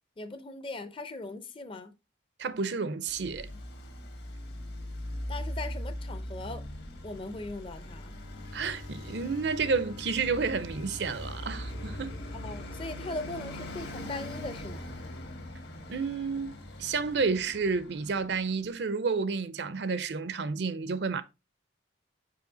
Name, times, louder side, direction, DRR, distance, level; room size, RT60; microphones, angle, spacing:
voice 1, 0.2-1.9 5.3-6.6 7.0-8.1 12.3-14.9, left 2 dB, 30° left, 0.6 m, -39 dB
voice 2, 2.4-3.5 8.5-12.2 15.9-16.5 16.8-21.2, right 4 dB, 65° right, 0.5 m, -30 dB
Traffic noise roadway noise, 3.1-18.6, left 1 dB, 60° left, 1.4 m, -41 dB
Bowed string instrument, 7.7-13.7, left 2 dB, 75° left, 1.9 m, -47 dB
5.7 x 4.5 x 3.9 m
head